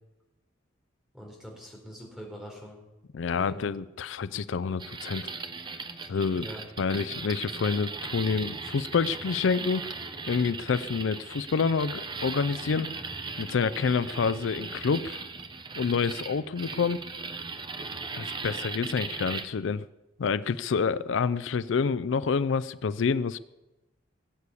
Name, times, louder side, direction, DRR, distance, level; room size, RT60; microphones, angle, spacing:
voice 1, 1.1-2.8 3.4-3.6 6.3-6.6, equal, ahead, -1 dB, 4.3 m, -43 dB
voice 2, 3.1-5.3 6.1-6.5 6.8-9.9 10.3-12.9 13.4-15.2 15.8-17.0 18.1-19.8 20.2-23.4, left 5 dB, 75° left, 16 dB, 0.4 m, -28 dB
sound 1, 4.8-19.4, right 4 dB, 25° right, 0.9 m, -38 dB
19.0 x 8.4 x 8.3 m, 1.0 s
head